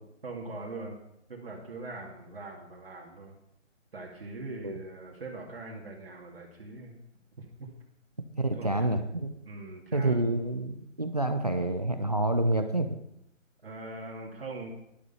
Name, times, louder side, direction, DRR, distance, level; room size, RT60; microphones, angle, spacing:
voice 1, 0.2-1.0 1.3-3.3 3.9-7.0 7.4-7.7 8.5-8.9 9.4-10.3 13.6-14.7, right 2 dB, 45° right, -2 dB, 2.3 m, -41 dB
voice 2, 8.4-9.3 9.9-12.9, right 2 dB, 30° right, 7 dB, 0.7 m, -28 dB
11.5 x 11.5 x 5.5 m, 0.79 s
hypercardioid pair, 180°, 39 cm